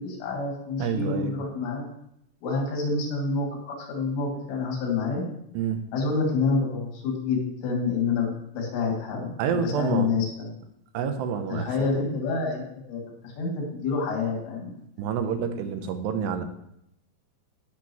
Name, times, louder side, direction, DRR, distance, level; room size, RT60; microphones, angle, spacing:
voice 1, 0.0-1.9 2.4-5.3 5.9-10.5 11.5-14.7, left 4 dB, 85° left, 0 dB, 4.7 m, -28 dB
voice 2, 0.8-1.3 5.5-5.9 9.4-10.1 10.9-11.7 15.0-16.5, right 7 dB, 85° right, 7 dB, 2.9 m, -28 dB
17.5 x 6.3 x 3.1 m, 0.77 s
omnidirectional pair, 4.9 m